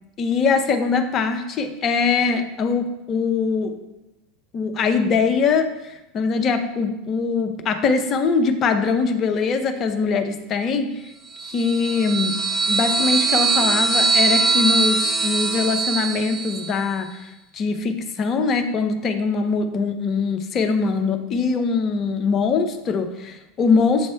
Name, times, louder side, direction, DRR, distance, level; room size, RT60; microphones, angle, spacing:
voice 1, 0.2-3.7 4.5-10.9 11.4-12.4 12.7-17.1 17.5-24.1, left 5 dB, 35° left, 6 dB, 0.6 m, -22 dB
sound 1, 11.4-16.8, right 4 dB, 25° right, 0.5 m, -21 dB
7.8 x 3.2 x 4.4 m, 1.0 s
figure-of-eight pair, 80°, 0 cm